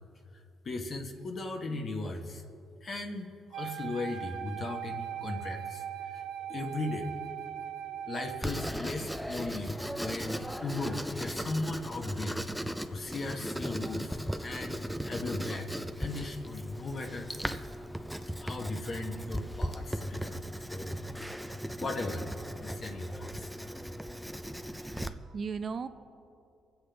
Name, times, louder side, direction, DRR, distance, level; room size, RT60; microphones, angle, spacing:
voice 1, 0.6-2.4 2.8-5.8 6.1-6.2 6.5-7.2 7.9-9.8 10.0-17.6 18.4-20.4 20.7-21.1 21.8-23.5, left 2 dB, 45° left, 4 dB, 1.1 m, -37 dB
Wind instrument woodwind instrument, 3.5-8.6, right 10 dB, 90° right, 1.3 m, -39 dB
Writing, 8.4-25.1, equal, ahead, 0.5 m, -37 dB
voice 2, 24.5-25.9, right 5 dB, 45° right, 10 dB, 0.6 m, -38 dB
23.0 x 8.1 x 3.4 m, 2.5 s
cardioid pair, 90°, 0 cm